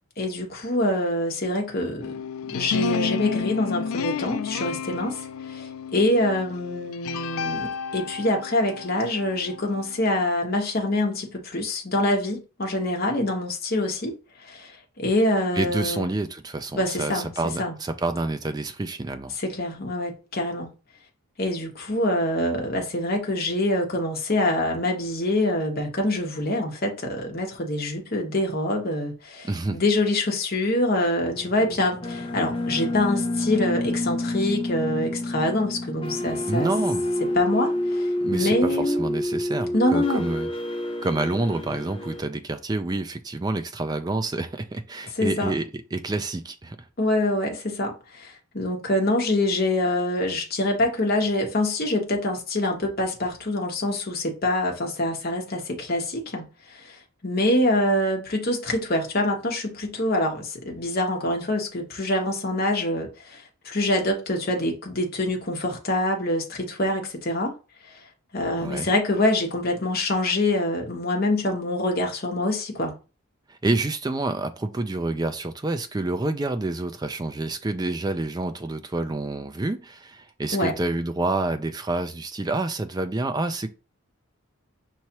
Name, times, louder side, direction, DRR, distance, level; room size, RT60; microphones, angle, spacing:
voice 1, 0.2-2.1 2.5-14.2 14.4-16.1 16.7-17.7 19.4-20.7 21.4-36.7 37.3-39.0 39.7-40.3 45.2-45.5 47.0-57.0 57.2-67.5 68.3-72.9 80.5-80.7, left 1 dB, 45° left, 1.0 m, -25 dB
sound 1, 2.0-10.1, left 6 dB, 75° left, 0.3 m, -31 dB
voice 2, 15.5-19.3 29.4-29.8 36.5-37.0 38.2-40.5 41.0-46.8 68.6-68.9 73.5-83.7, right 2 dB, 20° right, 0.3 m, -28 dB
sound 2, 31.2-42.2, left 1 dB, 25° left, 0.6 m, -28 dB
5.6 x 3.1 x 2.9 m
head